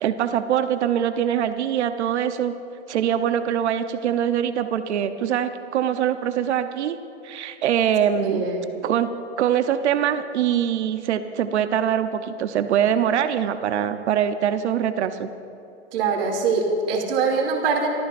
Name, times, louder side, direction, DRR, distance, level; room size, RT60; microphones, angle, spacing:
voice 1, 0.0-2.6 2.9-7.0 7.2-8.5 8.8-9.1 9.4-15.3, right 9 dB, 75° right, 9 dB, 0.9 m, -23 dB
voice 2, 8.1-8.6 15.9-17.9, right 4 dB, 55° right, 0 dB, 2.8 m, -23 dB
27.0 x 14.0 x 2.6 m, 2.8 s
hypercardioid pair, 135°, 34 cm